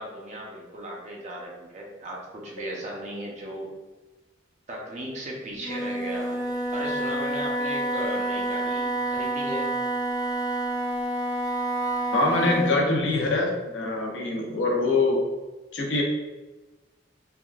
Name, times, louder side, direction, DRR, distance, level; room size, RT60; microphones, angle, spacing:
voice 1, 0.0-3.7 4.7-6.4 6.7-9.7, right 1 dB, 40° right, -2 dB, 0.6 m, -36 dB
Wind instrument woodwind instrument, 5.6-12.8, right 1 dB, 20° left, 0.4 m, -28 dB
voice 2, 12.1-15.2 15.7-16.0, left 2 dB, 80° left, -1 dB, 0.6 m, -24 dB
3.5 x 2.4 x 2.3 m, 1.2 s
head